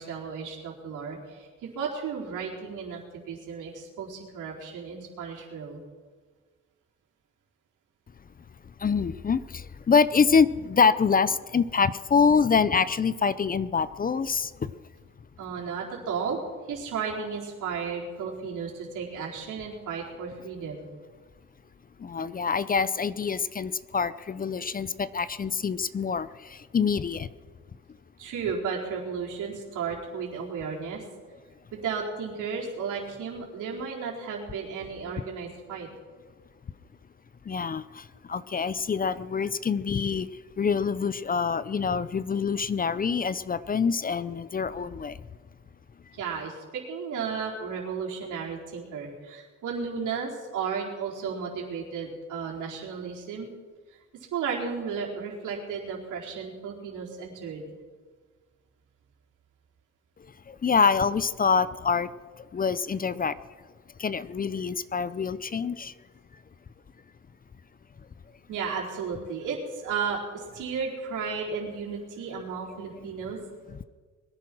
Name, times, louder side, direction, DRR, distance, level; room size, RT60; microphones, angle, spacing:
voice 1, 0.0-5.8 15.4-16.4 16.7-20.9 28.2-31.0 31.7-35.9 46.1-53.5 54.1-57.7 68.5-73.4, right 6 dB, 85° right, -2 dB, 4.3 m, -34 dB
voice 2, 8.8-14.7 22.0-26.3 26.7-27.3 37.5-37.8 38.3-40.3 40.6-45.2 60.5-62.1 62.5-63.3 64.0-65.9, left 5 dB, 30° left, 16 dB, 0.6 m, -25 dB
21.5 x 10.5 x 6.1 m, 1.5 s
cardioid pair, 90°, 30 cm